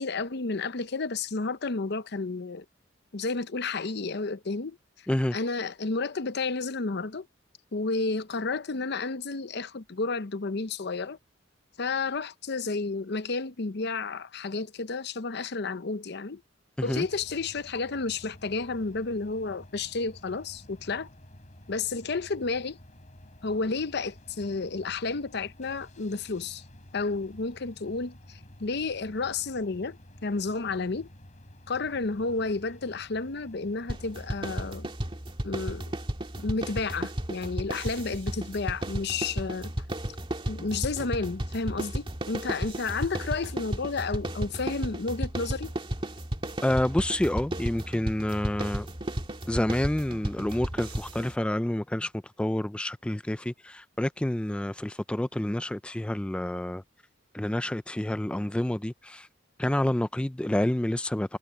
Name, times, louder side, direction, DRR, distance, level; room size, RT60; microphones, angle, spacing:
voice 1, 0.0-2.6 3.1-5.1 5.3-7.3 7.7-11.2 11.8-16.4 16.8-21.1 21.7-22.8 23.4-26.6 26.9-30.0 30.2-31.1 31.7-34.9 35.4-35.8 36.4-39.7 40.5-45.7, left 3 dB, 60° left, 0.8 m, -31 dB
sound 1, 16.9-34.8, left 1 dB, 40° left, 3.5 m, -51 dB
sound 2, 33.9-51.3, right 1 dB, 30° right, 2.0 m, -34 dB
voice 2, 46.6-48.9 49.5-52.1 52.4-56.8 57.3-59.3 59.6-61.4, left 1 dB, 5° left, 0.3 m, -28 dB
head